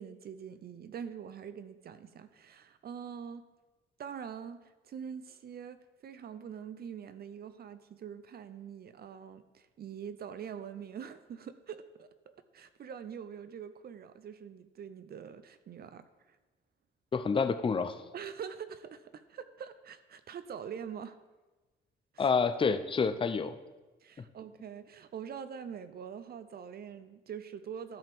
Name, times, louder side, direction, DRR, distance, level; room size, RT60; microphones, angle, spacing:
voice 1, 0.0-3.4 4.0-16.4 18.1-21.2 22.1-22.3 24.0-28.0, right 7 dB, 50° right, 12 dB, 0.6 m, -44 dB
voice 2, 17.1-18.0 22.2-23.5, left 5 dB, 25° left, 10 dB, 0.6 m, -28 dB
13.0 x 5.6 x 3.5 m, 1.2 s
cardioid pair, 90°, 20 cm